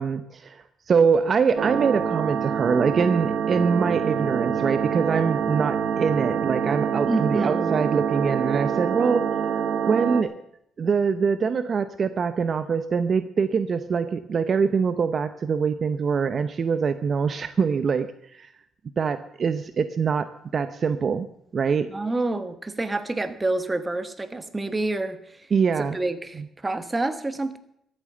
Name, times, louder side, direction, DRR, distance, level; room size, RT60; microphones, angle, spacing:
voice 1, 0.0-9.6 9.9-10.3 10.8-18.1 18.3-18.5 19.0-21.3 21.5-21.9 25.5-25.9, right 5 dB, 45° right, 12 dB, 0.7 m, -24 dB
sound 1, 1.6-10.2, right 7 dB, 65° right, 1.1 m, -26 dB
voice 2, 7.1-7.8 21.9-25.5 25.8-27.6, right 2 dB, 20° right, 11 dB, 1.4 m, -28 dB
13.5 x 8.8 x 7.6 m, 0.73 s
cardioid pair, 90°, 0 cm